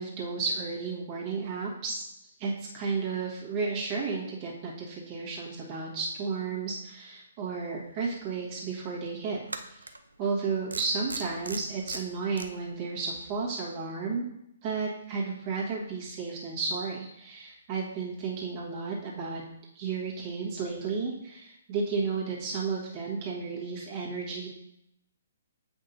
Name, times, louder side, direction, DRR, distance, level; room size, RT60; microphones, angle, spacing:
voice 1, 0.0-2.0 2.4-9.4 9.7-9.9 10.2-14.3 14.6-19.4 19.7-24.5, right 4 dB, 35° right, -4 dB, 1.5 m, -33 dB
sound 1, 8.1-8.2 9.5-10.0 10.7-12.5, right 2 dB, 80° right, 0.5 m, -38 dB
7.9 x 5.2 x 2.7 m, 0.80 s
figure-of-eight pair, 130°, 0 cm